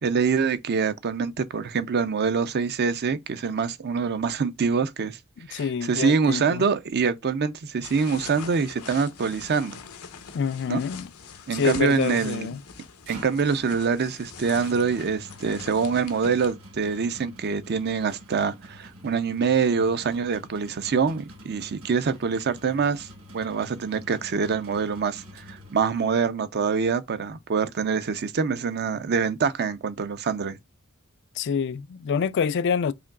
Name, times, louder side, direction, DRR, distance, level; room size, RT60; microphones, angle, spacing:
voice 1, 0.0-5.2 5.5-9.8 10.7-10.8 11.5-12.5 13.1-23.1 23.3-30.6, right 5 dB, 50° right, 0.5 m, -25 dB
voice 2, 5.5-6.6 10.3-11.1 11.5-12.6 31.4-32.9, left 6 dB, 55° left, 0.4 m, -26 dB
sound 1, 7.8-16.5, left 6 dB, 85° left, 0.8 m, -43 dB
sound 2, 12.7-26.2, equal, 70° right, 1.4 m, -47 dB
5.0 x 3.0 x 2.3 m
head